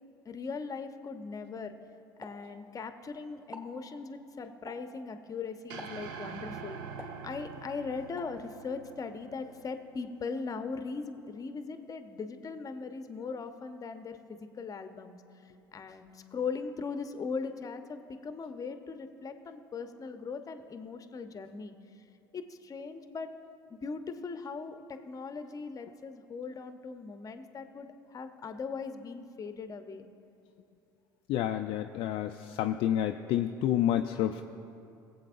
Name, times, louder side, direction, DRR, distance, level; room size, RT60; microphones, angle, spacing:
voice 1, 0.3-1.7 2.2-6.8 7.2-15.2 15.7-21.7 22.3-23.3 23.7-30.1, left 4 dB, 30° left, 8 dB, 0.8 m, -39 dB
Explosion, 2.2-3.1 3.4-3.8 4.7-5.0 5.8-6.2 7.0-7.7 8.2-8.4, left 2 dB, 5° right, 1.9 m, -48 dB
sound 1, 5.7-10.1, right 6 dB, 70° right, 0.7 m, -45 dB
voice 2, 31.3-34.4, left 11 dB, 55° left, 6 dB, 0.4 m, -29 dB
20.5 x 7.8 x 2.5 m, 2.7 s
hypercardioid pair, 65°, 12 cm